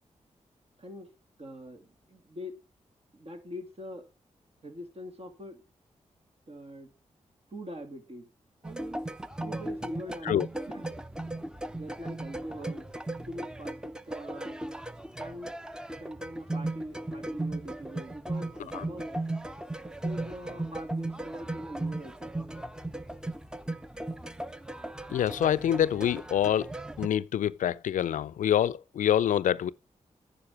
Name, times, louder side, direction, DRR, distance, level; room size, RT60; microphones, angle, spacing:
voice 1, 0.8-1.1 1.4-2.6 3.1-4.0 4.6-5.6 6.5-6.9 7.5-8.3 8.6-9.0 9.4-10.4 10.7-10.9 11.7-12.9 13.3-14.6 15.2-15.5 16.0-19.2 19.8-22.3, equal, 50° right, 2.6 m, -43 dB
sound 1, 8.6-27.1, right 2 dB, 5° right, 0.8 m, -37 dB
voice 2, 25.1-26.7 27.0-29.7, left 10 dB, 85° left, 0.4 m, -26 dB
9.7 x 5.2 x 7.3 m
cardioid pair, 50°, 13 cm